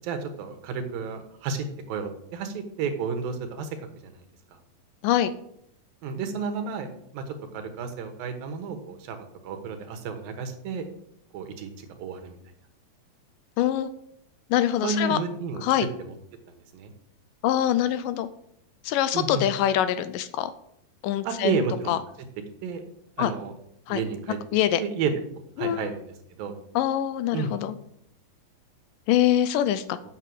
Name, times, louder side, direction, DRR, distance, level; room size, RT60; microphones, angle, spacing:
voice 1, 0.0-3.7 4.0-4.2 6.0-10.9 11.3-12.4 14.8-15.6 16.0-16.1 16.5-16.9 19.1-19.4 21.2-21.9 22.6-22.8 23.2-23.5 23.9-24.4 24.7-25.1 25.6-26.1 26.4-26.5 27.3-27.5, right 5 dB, 80° right, 6 dB, 3.0 m, -31 dB
voice 2, 13.6-13.9 14.5-15.2 15.6-15.9 17.4-18.3 18.8-20.5 21.0-21.6 21.9-22.0 23.2-23.3 23.9-24.0 24.5-24.8 25.6-25.9 26.8-27.8 29.1-30.0, left 11 dB, 80° left, 12 dB, 2.1 m, -24 dB
8.3 x 6.7 x 7.7 m, 0.73 s
omnidirectional pair, 4.1 m